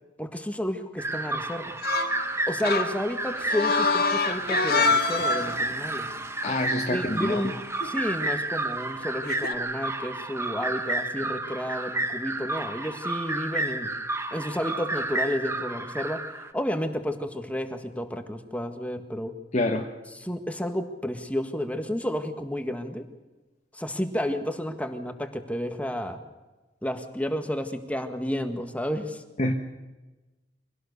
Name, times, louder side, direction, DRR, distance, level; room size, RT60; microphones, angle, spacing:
voice 1, 0.2-1.7 2.5-6.1 6.9-7.5 7.8-13.9 14.3-16.2 16.5-19.3 20.2-23.1 23.7-26.2 26.8-29.2, equal, 10° left, 7 dB, 1.7 m, -31 dB
sound 1, 1.0-16.5, right 2 dB, 15° right, 1.2 m, -31 dB
sound 2, 1.8-2.2 2.6-5.6 7.8-8.0 9.2-9.5, left 4 dB, 60° left, 1.9 m, -25 dB
voice 2, 6.4-7.4 19.5-19.9 29.4-29.5, left 1 dB, 40° left, 3 dB, 1.3 m, -26 dB
24.0 x 17.5 x 6.7 m, 1.1 s
head